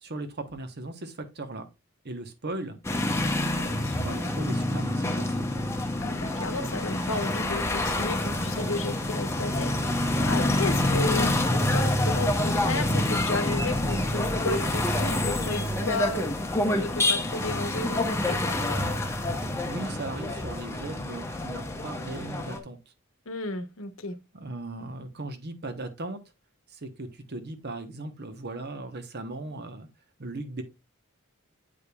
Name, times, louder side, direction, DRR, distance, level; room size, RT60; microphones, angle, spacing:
voice 1, 0.0-1.7 2.0-2.8 3.9-5.4 10.3-10.9 19.4-22.8 24.3-26.2 26.7-29.9 30.2-30.6, right 2 dB, 45° right, 1.0 m, -37 dB
sound 1, 2.8-22.6, left 1 dB, 10° left, 0.9 m, -27 dB
voice 2, 3.5-4.4 6.0-16.3 16.8-18.4 23.3-24.2, left 2 dB, 60° left, 1.0 m, -33 dB
8.4 x 5.0 x 2.3 m
head